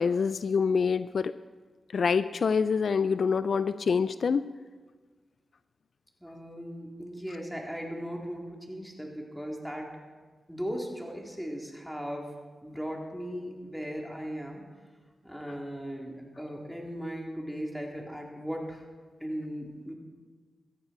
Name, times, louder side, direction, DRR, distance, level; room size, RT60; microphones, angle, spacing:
voice 1, 0.0-1.3 1.9-4.4, left 5 dB, 70° left, 14 dB, 0.4 m, -26 dB
voice 2, 6.2-9.9 10.5-12.3 12.6-14.6 15.2-18.8 19.2-19.9, equal, ahead, -1 dB, 3.7 m, -37 dB
17.0 x 13.5 x 4.5 m, 1.4 s
cardioid pair, 50°, 0 cm